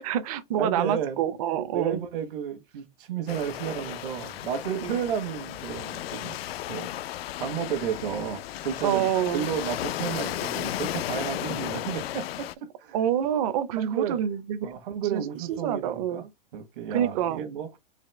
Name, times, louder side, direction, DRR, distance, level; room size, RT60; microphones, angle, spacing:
voice 1, 0.0-2.0 4.8-5.0 8.8-9.5 12.9-14.7 15.1-16.2 16.9-17.4, right 10 dB, 40° right, 0.6 m, -27 dB
voice 2, 0.6-1.2 1.7-6.4 6.7-6.9 7.4-9.1 9.3-12.5 12.8-13.0 13.8-14.2 14.6-17.7, right 8 dB, 65° right, 1.2 m, -32 dB
Waves surf, 3.3-12.5, left 13 dB, 85° left, 0.5 m, -34 dB
4.2 x 2.8 x 3.2 m
supercardioid pair, 165°, 29 cm